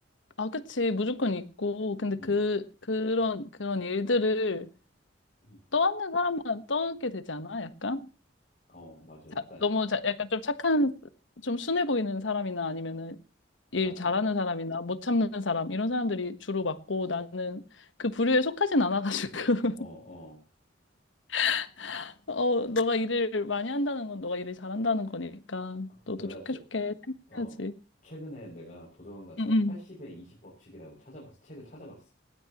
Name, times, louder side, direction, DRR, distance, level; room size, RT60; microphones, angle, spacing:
voice 1, 0.4-4.7 5.7-8.0 9.6-10.9 11.4-13.2 13.7-17.6 18.0-19.8 21.3-26.2 26.7-26.9 27.3-27.7 29.4-29.7, left 3 dB, 80° left, 1.4 m, -29 dB
voice 2, 8.7-9.7 13.8-14.2 19.8-20.4 25.9-26.6 27.3-27.6 28.0-32.1, equal, 45° left, 6.9 m, -47 dB
19.0 x 16.0 x 3.0 m
head